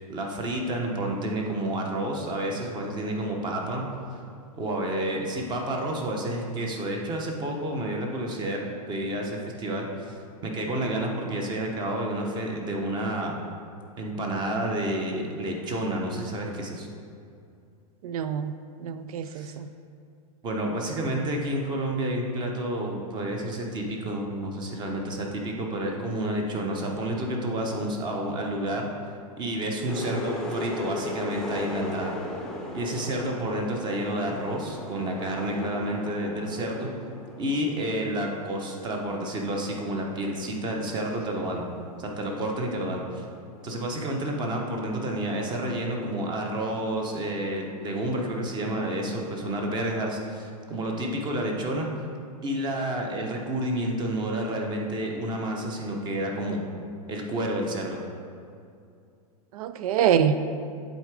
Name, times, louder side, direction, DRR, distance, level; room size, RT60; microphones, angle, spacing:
voice 1, 0.1-3.8 4.1-4.2 4.6-8.6 8.9-13.3 14.0-16.9 19.2-19.5 20.4-28.9 29.4-32.2 32.7-36.9 37.4-41.6 42.0-43.2 43.6-51.9 52.4-56.6 57.1-58.0, right 1 dB, 20° right, 1 dB, 0.9 m, -30 dB
voice 2, 18.0-18.5 18.8-19.7 59.5-60.4, right 9 dB, 70° right, 11 dB, 0.4 m, -25 dB
sound 1, 29.9-44.3, left 2 dB, 5° left, 0.7 m, -38 dB
8.1 x 3.8 x 4.9 m, 2.4 s
hypercardioid pair, 140°, 19 cm